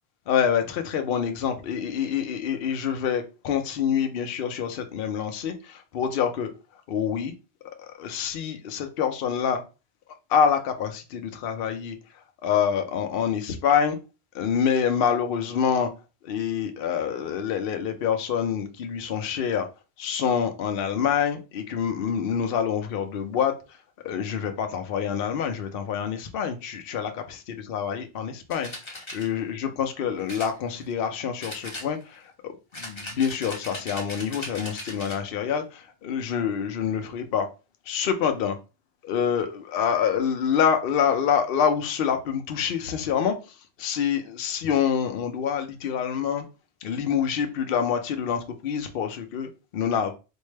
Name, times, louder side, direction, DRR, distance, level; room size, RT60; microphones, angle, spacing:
voice 1, 0.3-6.5 6.9-7.3 7.8-9.6 10.3-12.0 12.4-14.0 14.3-15.9 16.2-19.7 20.0-23.5 24.0-37.5 37.9-38.6 39.0-43.3 43.8-46.4 46.8-50.1, left 7 dB, 60° left, 0.7 m, -26 dB
sound 1, 28.5-29.3 30.3-31.1 31.4-32.3 32.7-35.3, left 1 dB, 25° left, 0.8 m, -38 dB
4.3 x 2.1 x 3.2 m
omnidirectional pair, 1.2 m